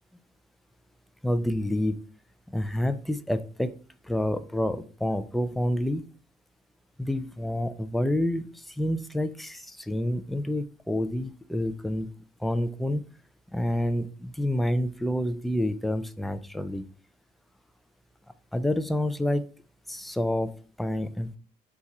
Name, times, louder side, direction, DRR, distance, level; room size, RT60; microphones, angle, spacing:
voice 1, 1.2-2.0 2.5-3.8 4.0-6.0 7.0-12.1 12.4-13.0 13.5-16.8 18.5-19.5 19.9-21.4, left 1 dB, ahead, 10 dB, 0.3 m, -28 dB
4.1 x 2.4 x 4.5 m, 0.40 s
cardioid pair, 110°, 17 cm